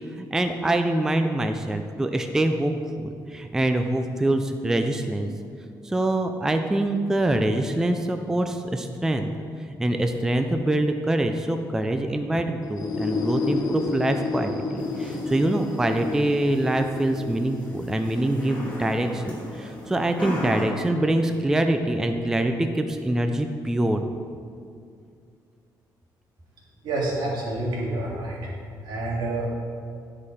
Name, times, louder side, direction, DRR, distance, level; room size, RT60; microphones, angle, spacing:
voice 1, 0.2-5.3 5.8-9.3 9.7-24.0, right 1 dB, 5° right, 6 dB, 0.3 m, -24 dB
sound 1, 12.6-20.3, left 4 dB, 50° left, 0.8 m, -32 dB
sound 2, 14.8-20.6, left 1 dB, 15° left, 1.8 m, -38 dB
voice 2, 26.8-28.4 28.8-29.5, right 2 dB, 80° right, -4 dB, 2.1 m, -28 dB
10.5 x 4.9 x 4.2 m, 2.3 s
cardioid pair, 150°, 8 cm